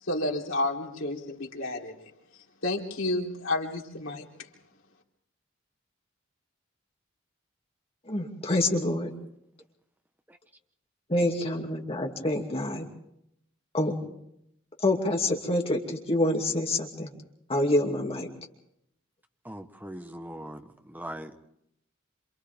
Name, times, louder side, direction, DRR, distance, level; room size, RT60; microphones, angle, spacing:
voice 1, 0.0-2.1 2.6-4.5, left 2 dB, 80° left, -1 dB, 3.5 m, -31 dB
voice 2, 8.1-9.1 11.1-12.9 13.7-14.0 14.8-17.1 17.5-18.3, left 1 dB, 30° left, 1 dB, 2.5 m, -27 dB
voice 3, 19.4-21.4, right 1 dB, 10° right, 6 dB, 1.2 m, -41 dB
27.5 x 27.0 x 3.6 m, 0.77 s
head